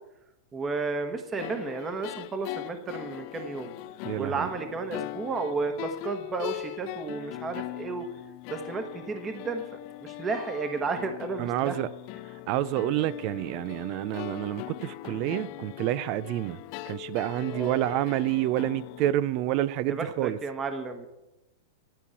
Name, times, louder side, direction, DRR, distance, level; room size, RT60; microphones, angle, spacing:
voice 1, 0.5-3.7 4.2-8.1 8.5-9.6 10.0-11.8 17.5-17.8 19.9-21.1, right 4 dB, 25° right, 1.2 m, -32 dB
sound 1, 1.4-19.1, left 18 dB, 50° left, 0.4 m, -40 dB
voice 2, 4.0-4.5 11.4-11.9 12.5-16.6 16.9-20.4, right 14 dB, 50° right, 0.5 m, -28 dB
12.0 x 5.4 x 8.4 m
hypercardioid pair, 105°, 0 cm